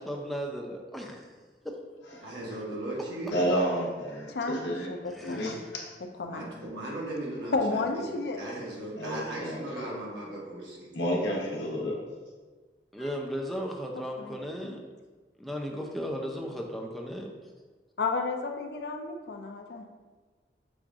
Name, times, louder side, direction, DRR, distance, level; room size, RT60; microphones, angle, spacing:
voice 1, 0.0-1.4 1.6-1.8 5.1-5.6 12.9-14.8 15.4-17.3, equal, ahead, 0 dB, 0.4 m, -36 dB
voice 2, 2.2-3.4 6.2-10.9, right 1 dB, 85° right, -4 dB, 1.2 m, -37 dB
voice 3, 3.3-4.9 5.2-5.5 9.0-9.6 10.9-12.0, equal, 85° left, -2 dB, 1.0 m, -30 dB
voice 4, 4.3-5.6 6.2-6.4 7.5-8.4 13.9-14.4 14.6-14.8 18.0-19.8, left 3 dB, 65° left, 4 dB, 0.4 m, -32 dB
6.0 x 2.4 x 3.6 m, 1.4 s
head